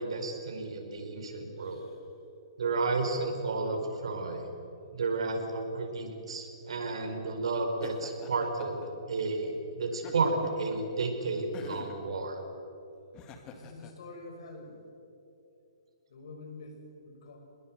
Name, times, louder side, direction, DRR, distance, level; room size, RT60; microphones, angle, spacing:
voice 1, 0.0-1.8 2.6-4.5 4.9-12.4, right 3 dB, 75° right, 3 dB, 5.1 m, -32 dB
voice 2, 1.4-2.0 13.5-14.8 16.1-17.4, left 2 dB, 60° left, 3 dB, 6.0 m, -47 dB
Laughter, 7.8-8.9 9.9-10.6 11.5-12.0 13.1-13.9, left 6 dB, 25° left, 2.0 m, -47 dB
26.5 x 20.5 x 7.8 m, 2.9 s
hypercardioid pair, 155°, 3 cm